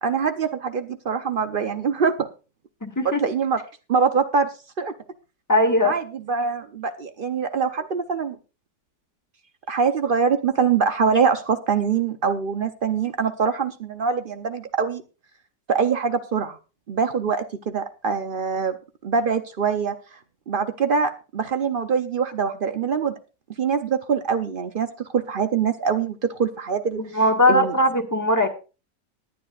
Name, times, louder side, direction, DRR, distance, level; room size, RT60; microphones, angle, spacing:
voice 1, 0.0-2.3 3.0-3.6 3.9-4.5 4.8-4.9 5.8-8.4 9.7-15.0 15.7-16.6 16.9-18.8 19.0-20.0 20.5-23.1 23.6-27.0 27.5-27.7, right 6 dB, 70° right, 8 dB, 0.5 m, -24 dB
voice 2, 2.8-3.2 5.5-5.9 27.0-28.5, left 1 dB, 10° left, 3 dB, 1.4 m, -19 dB
20.0 x 9.5 x 2.4 m, 0.32 s
omnidirectional pair, 1.9 m